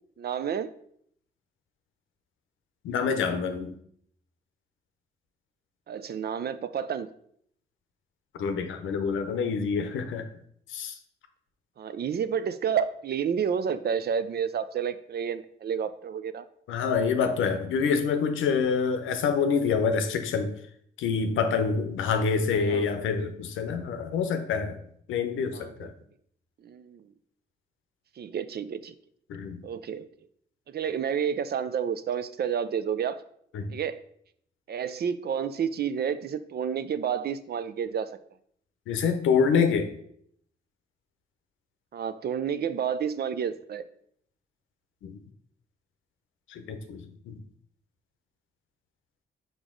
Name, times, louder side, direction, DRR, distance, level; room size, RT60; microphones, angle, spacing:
voice 1, 0.2-0.7 5.9-7.1 11.8-16.4 22.5-22.9 25.5-25.9 26.6-27.1 28.2-28.9 29.6-30.1 30.7-33.2 33.7-34.0 34.7-38.2 41.9-43.8, right 7 dB, 55° right, 13 dB, 0.5 m, -30 dB
voice 2, 2.8-3.7 8.3-10.3 10.7-11.0 16.7-20.5 21.0-24.8 25.1-25.9 29.3-29.6 33.5-33.7 38.9-39.9 45.0-45.2 46.5-47.4, left 5 dB, 85° left, 7 dB, 0.7 m, -26 dB
5.1 x 5.0 x 3.7 m, 0.67 s
supercardioid pair, 55°, 20 cm